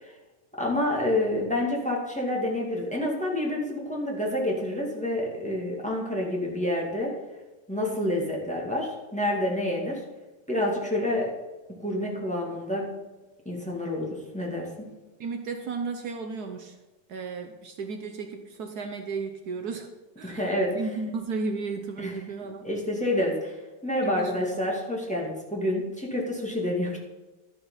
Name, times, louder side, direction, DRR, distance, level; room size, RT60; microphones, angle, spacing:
voice 1, 0.6-7.2 7.7-10.0 10.5-11.4 11.8-12.9 13.5-14.9 20.2-20.9 22.0-22.1 22.6-23.6 23.8-27.0, left 1 dB, 5° left, -2 dB, 2.0 m, -28 dB
voice 2, 15.2-16.8 17.1-19.9 20.2-22.7 24.0-24.5, right 4 dB, 65° right, 5 dB, 1.3 m, -34 dB
12.0 x 6.9 x 5.6 m, 1.1 s
omnidirectional pair, 1.8 m